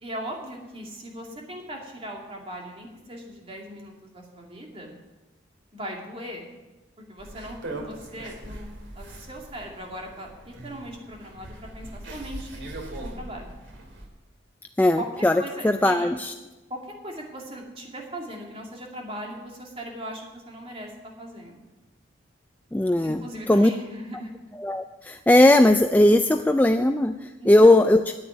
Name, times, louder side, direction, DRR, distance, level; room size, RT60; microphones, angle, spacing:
voice 1, 0.0-4.9 5.7-6.4 7.0-8.7 8.9-12.6 13.0-13.5 15.0-15.1 15.4-16.1 16.7-20.9 21.2-21.6 23.0-24.3 27.4-27.8, equal, 30° right, 0 dB, 2.4 m, -39 dB
sound 1, 7.2-14.0, right 1 dB, 75° right, 2.4 m, -40 dB
voice 2, 14.8-16.3 22.7-23.7 24.6-28.0, left 1 dB, 10° left, 6 dB, 0.3 m, -19 dB
9.7 x 8.9 x 9.4 m, 1.1 s
head